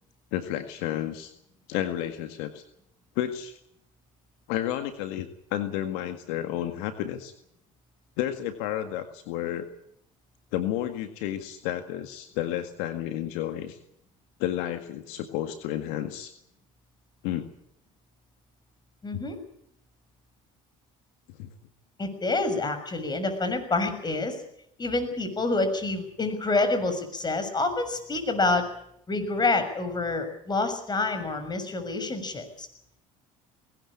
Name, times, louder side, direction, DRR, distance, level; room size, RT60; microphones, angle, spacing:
voice 1, 0.3-1.3 1.7-2.6 3.2-3.6 4.5-7.3 8.2-9.7 10.5-13.8 14.4-16.3 17.2-17.5 19.1-19.2 21.4-21.5, left 12 dB, 75° left, 8 dB, 1.9 m, -31 dB
voice 2, 19.0-19.4 22.0-24.4 24.8-28.7 29.1-32.7, left 3 dB, 25° left, 7 dB, 6.6 m, -27 dB
20.0 x 17.5 x 8.7 m, 0.73 s
hypercardioid pair, 75°, 17 cm